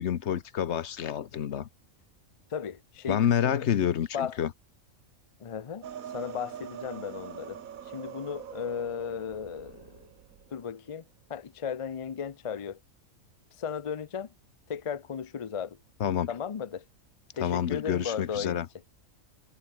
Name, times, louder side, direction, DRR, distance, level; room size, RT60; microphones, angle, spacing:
voice 1, 0.0-1.7 3.1-4.5 16.0-16.3 17.4-18.7, left 9 dB, 60° left, 1.1 m, -28 dB
voice 2, 2.5-3.7 4.1-4.4 5.4-5.9 6.1-10.1 10.5-11.0 11.3-12.8 13.6-14.3 14.7-15.8 16.3-16.8 17.4-18.6, left 7 dB, 45° left, 0.4 m, -35 dB
sound 1, 5.8-10.7, right 9 dB, 90° right, 1.5 m, -44 dB
omnidirectional pair, 1.4 m